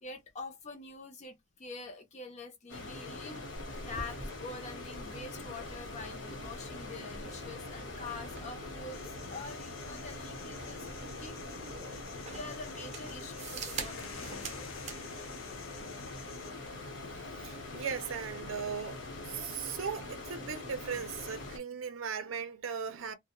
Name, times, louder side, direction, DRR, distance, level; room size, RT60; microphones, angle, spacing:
voice 1, 0.0-3.4 3.9-9.0 9.3-11.4 12.2-14.7 15.8-16.1, left 3 dB, 35° left, 0.4 m, -46 dB
sound 1, 2.7-21.6, left 2 dB, 65° left, 0.9 m, -43 dB
rolling bag, 3.6-15.0, right 3 dB, 35° right, 0.6 m, -47 dB
sound 2, 8.9-16.5, left 7 dB, 90° left, 0.6 m, -51 dB
voice 2, 17.2-23.1, right 6 dB, 90° right, 0.5 m, -38 dB
2.3 x 2.1 x 2.8 m
head